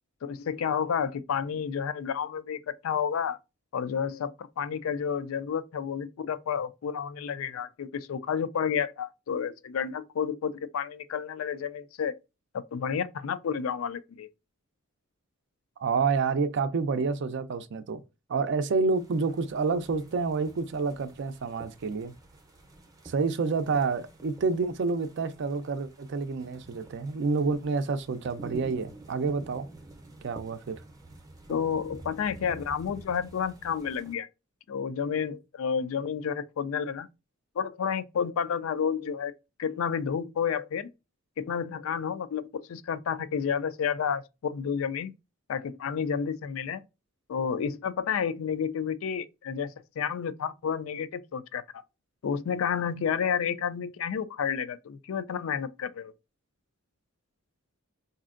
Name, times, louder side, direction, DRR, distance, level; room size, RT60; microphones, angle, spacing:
voice 1, 0.2-3.4 3.7-12.1 12.5-14.3 31.5-34.3 34.7-37.1 37.6-39.3 39.6-40.9 41.4-45.1 45.5-46.8 47.3-49.7 50.0-51.8 52.2-56.1, left 7 dB, 70° left, 0.4 m, -30 dB
voice 2, 15.8-18.0 18.3-22.1 23.0-29.7 30.2-30.8, right 4 dB, 60° right, 0.4 m, -28 dB
sound 1, 18.9-34.1, right 2 dB, 15° right, 0.6 m, -49 dB
4.1 x 2.7 x 2.4 m
head